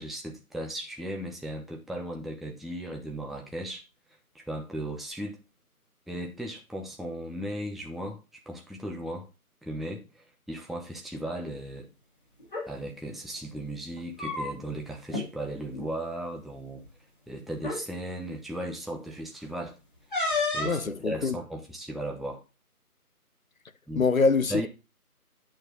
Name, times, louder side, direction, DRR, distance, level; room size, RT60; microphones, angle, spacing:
voice 1, 0.0-3.8 4.3-5.4 6.1-9.3 9.6-11.9 12.7-16.9 17.3-19.8 20.5-22.4 23.9-24.1 24.5-24.7, right 1 dB, ahead, 0.6 m, -36 dB
sound 1, 12.4-12.7 13.9-14.8 15.1-15.3 15.6-15.9 16.8-16.9 17.6-17.8 20.1-20.8, left 3 dB, 35° left, 2.7 m, -30 dB
voice 2, 20.6-21.4 24.0-24.7, left 4 dB, 60° left, 0.9 m, -24 dB
8.9 x 6.4 x 3.6 m
figure-of-eight pair, 170°, 46 cm